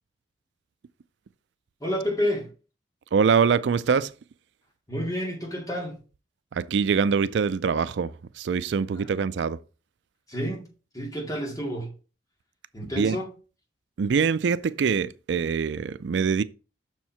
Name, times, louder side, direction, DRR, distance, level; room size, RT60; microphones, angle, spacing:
voice 1, 1.8-2.5 4.9-6.0 8.9-9.1 10.3-10.7 10.9-11.9 12.7-13.3, equal, 20° left, 2.2 m, -29 dB
voice 2, 3.1-4.1 6.5-9.6 13.0-13.2 14.0-16.4, right 6 dB, 75° right, 0.4 m, -24 dB
6.4 x 4.6 x 5.6 m
head